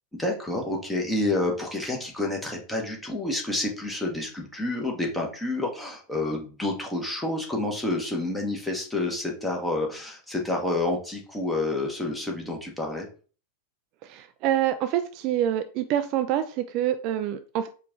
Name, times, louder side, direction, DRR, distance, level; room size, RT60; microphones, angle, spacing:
voice 1, 0.2-13.1, left 2 dB, 5° left, -1 dB, 1.2 m, -29 dB
voice 2, 14.0-17.7, right 11 dB, 40° right, 9 dB, 0.3 m, -26 dB
4.6 x 2.5 x 3.6 m, 0.38 s
figure-of-eight pair, 90°, 0 cm